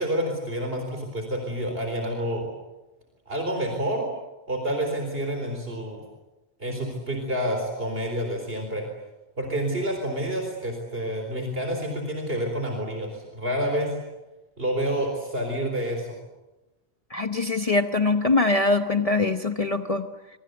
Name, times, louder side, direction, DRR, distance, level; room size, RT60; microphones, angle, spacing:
voice 1, 0.0-2.5 3.3-4.1 4.5-6.0 6.6-8.9 9.4-13.9 14.6-16.2, right 1 dB, 65° right, 3 dB, 4.3 m, -28 dB
voice 2, 17.1-20.1, left 3 dB, 35° left, 7 dB, 1.0 m, -23 dB
25.5 x 25.0 x 8.0 m, 1.1 s
omnidirectional pair, 1.1 m